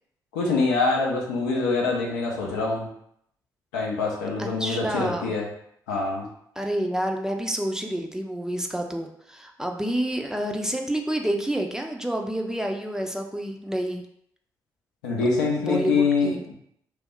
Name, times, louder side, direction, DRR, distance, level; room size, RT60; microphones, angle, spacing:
voice 1, 0.3-2.9 3.7-5.5 5.9-6.3 15.0-16.5, left 4 dB, 85° left, -2 dB, 0.5 m, -24 dB
voice 2, 4.4-5.4 6.6-14.0 15.6-16.4, right 1 dB, 5° right, 2 dB, 0.4 m, -28 dB
2.3 x 2.0 x 3.7 m, 0.71 s
hypercardioid pair, 40°, 10 cm